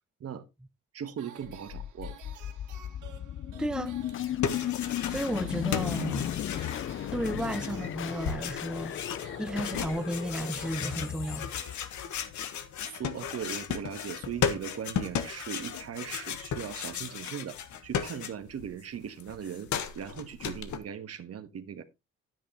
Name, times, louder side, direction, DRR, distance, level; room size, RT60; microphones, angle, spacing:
voice 1, 0.9-2.1 12.8-21.8, right 8 dB, 55° right, 1.3 m, -39 dB
sound 1, 1.2-12.3, right 9 dB, 80° right, 2.2 m, -53 dB
sound 2, 1.4-12.5, left 11 dB, 45° left, 0.4 m, -36 dB
voice 2, 3.6-4.0 5.0-6.3 7.1-11.5, right 1 dB, 5° right, 0.7 m, -33 dB
sound 3, 4.1-5.5 5.7-18.7 18.9-20.8, left 8 dB, 75° left, 1.4 m, -35 dB
10.5 x 9.3 x 2.9 m
cardioid pair, 90°, 30 cm